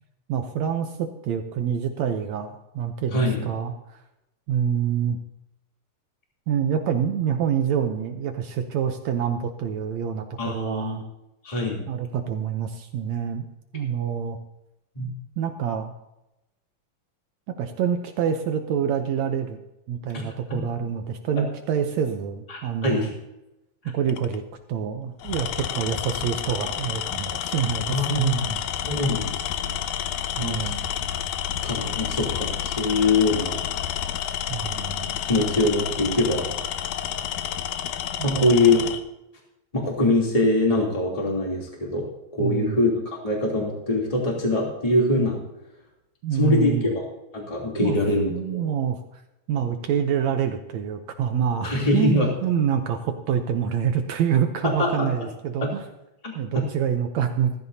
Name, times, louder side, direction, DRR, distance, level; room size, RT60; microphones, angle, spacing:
voice 1, 0.3-4.0 4.5-5.2 6.5-11.0 11.9-13.4 13.7-14.4 15.4-15.9 17.5-19.6 19.9-23.1 23.9-24.4 24.7-28.6 30.4-30.9 34.5-35.2 38.2-38.7 42.4-42.8 46.2-46.9 47.8-48.0 48.3-49.2 49.5-55.8 56.4-57.5, right 8 dB, 70° right, 6 dB, 1.8 m, -26 dB
voice 2, 3.1-3.5 10.4-11.0 11.4-11.8 14.9-15.1 20.1-20.2 21.4-21.5 22.5-23.1 27.9-28.4 28.9-29.3 29.6-29.7 30.4-30.7 31.6-33.6 35.2-36.5 38.2-38.8 39.7-42.1 42.3-45.4 46.4-46.9 47.3-48.6 51.6-52.3 54.6-55.1 55.6-55.7 56.2-56.6, left 2 dB, 10° left, -2 dB, 2.7 m, -23 dB
Tools, 24.1-24.4 25.2-39.0, left 10 dB, 80° left, 2.1 m, -30 dB
15.5 x 14.5 x 2.8 m, 0.91 s
omnidirectional pair, 3.7 m